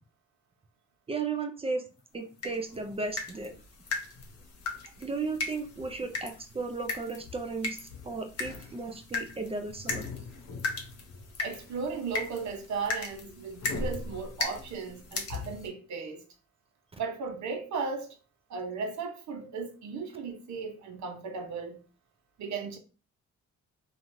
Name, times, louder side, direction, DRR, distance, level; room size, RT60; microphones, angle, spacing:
voice 1, 1.1-1.8 2.1-3.6 5.0-10.1, right 4 dB, 20° right, 0.4 m, -35 dB
sound 1, 2.4-15.7, left 3 dB, 55° left, 0.9 m, -37 dB
voice 2, 11.4-16.2 17.0-18.2 18.5-21.8 22.4-22.8, right 5 dB, 65° right, 0.8 m, -36 dB
3.0 x 2.5 x 2.6 m
cardioid pair, 90°, 30 cm